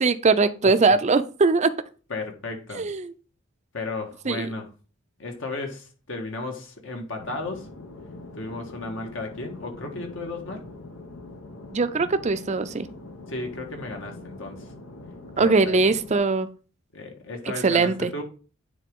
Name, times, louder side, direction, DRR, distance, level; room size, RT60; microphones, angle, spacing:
voice 1, 0.0-1.7 2.7-3.1 4.3-4.5 11.7-12.9 15.4-16.5 17.6-18.1, right 4 dB, 35° right, 11 dB, 0.5 m, -21 dB
voice 2, 2.1-2.8 3.7-4.7 5.2-7.7 8.4-10.6 13.3-14.7 15.4-15.8 16.9-18.2, left 2 dB, 65° left, 3 dB, 1.6 m, -34 dB
sound 1, 7.2-16.2, left 2 dB, 90° left, 1.3 m, -43 dB
9.2 x 3.9 x 3.7 m, 0.36 s
head